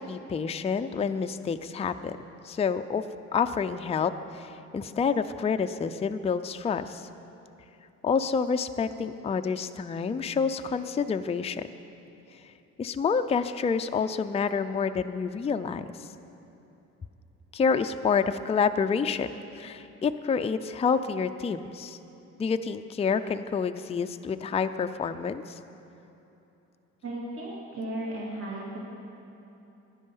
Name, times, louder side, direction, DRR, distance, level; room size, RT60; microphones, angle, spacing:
voice 1, 0.0-2.2 2.4-3.0 3.3-7.1 8.0-11.6 12.8-15.9 17.5-19.3 19.6-22.0 22.4-25.4, left 6 dB, 20° left, 8 dB, 0.4 m, -28 dB
voice 2, 27.0-28.8, right 1 dB, 45° right, -5 dB, 2.6 m, -35 dB
13.0 x 9.7 x 5.5 m, 3.0 s
cardioid pair, 90°, 30 cm